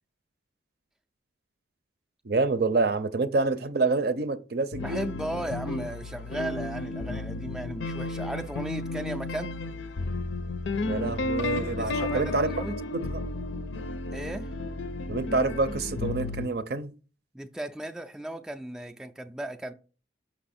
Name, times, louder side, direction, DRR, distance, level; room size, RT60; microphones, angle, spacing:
voice 1, 2.2-5.0 10.9-12.5 12.9-13.2 15.1-16.9, right 3 dB, 55° right, 0.6 m, -27 dB
sound 1, 4.7-16.5, left 2 dB, 80° left, 0.6 m, -33 dB
voice 2, 4.8-9.6 11.8-12.8 14.1-14.5 17.3-19.7, right 1 dB, 5° right, 0.3 m, -36 dB
6.2 x 5.4 x 4.2 m
head